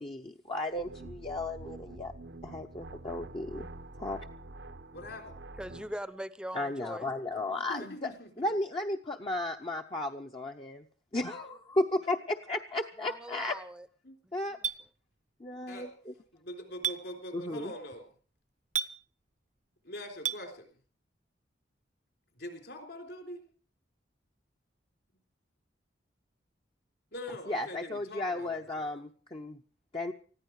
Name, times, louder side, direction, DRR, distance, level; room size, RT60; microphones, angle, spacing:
voice 1, 0.0-2.1 2.4-3.7 4.0-4.3 6.5-8.1 8.4-10.8 11.1-13.6 14.3-14.6 15.4-16.1 17.3-17.7 27.5-29.6 29.9-30.1, left 2 dB, 30° left, 2 dB, 0.8 m, -34 dB
sound 1, 0.7-6.0, right 2 dB, 80° right, 1.1 m, -46 dB
voice 2, 4.9-5.4 7.7-8.3 14.0-14.2 14.5-14.6 15.7-15.9 16.3-18.1 19.8-20.7 22.4-23.4 27.1-28.9, left 1 dB, 60° left, 5 dB, 3.9 m, -43 dB
voice 3, 5.6-7.1 13.0-13.9 14.6-14.7, equal, 5° right, 14 dB, 0.7 m, -41 dB
Chink clink, 14.6-14.8 16.8-17.0 18.8-18.9 20.3-20.4, right 7 dB, 40° right, 0.7 m, -30 dB
20.0 x 14.5 x 4.8 m, 0.41 s
head